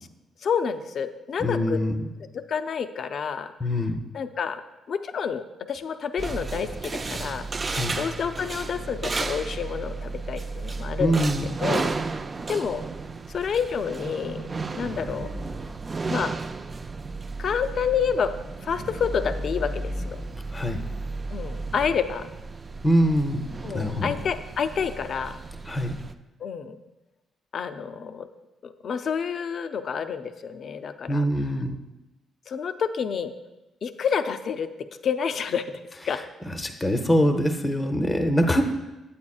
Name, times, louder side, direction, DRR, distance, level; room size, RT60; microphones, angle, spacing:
voice 1, 0.4-1.8 2.3-3.5 4.1-4.6 4.9-7.5 8.0-11.2 11.6-12.2 12.5-12.8 13.3-14.5 14.7-15.3 16.1-16.3 17.4-18.3 18.6-20.2 21.3-22.3 23.6-25.4 26.4-26.8 27.5-28.3 28.6-31.2 32.5-33.3 33.8-34.7 35.0-36.2, left 7 dB, 55° left, 9 dB, 0.4 m, -29 dB
voice 2, 1.4-2.1 3.6-4.0 7.6-8.0 11.0-11.5 20.5-20.8 22.8-23.5 23.7-24.2 25.7-25.9 31.1-31.8 36.5-38.6, equal, 15° left, 4 dB, 0.6 m, -23 dB
sound 1, 6.2-26.1, right 3 dB, 30° right, 0.3 m, -33 dB
8.7 x 8.4 x 2.4 m, 1.0 s
cardioid pair, 90°, 0 cm